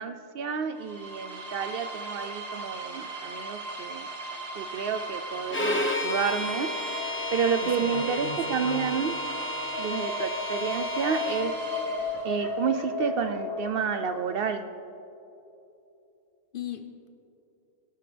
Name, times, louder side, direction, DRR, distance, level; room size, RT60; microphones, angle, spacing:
voice 1, 0.0-4.1 4.5-6.7 7.3-9.2 9.8-11.5 12.2-14.6, right 6 dB, 65° right, 9 dB, 0.5 m, -30 dB
sound 1, 0.7-12.6, right 3 dB, 30° right, 1.2 m, -38 dB
Bowed string instrument, 5.5-11.5, left 1 dB, 10° left, 0.7 m, -33 dB
sound 2, 6.2-14.4, left 3 dB, 75° left, 1.5 m, -35 dB
voice 2, 7.6-9.0 16.5-17.1, left 6 dB, 45° left, 7 dB, 0.9 m, -39 dB
18.0 x 12.0 x 3.4 m, 2.9 s
omnidirectional pair, 1.5 m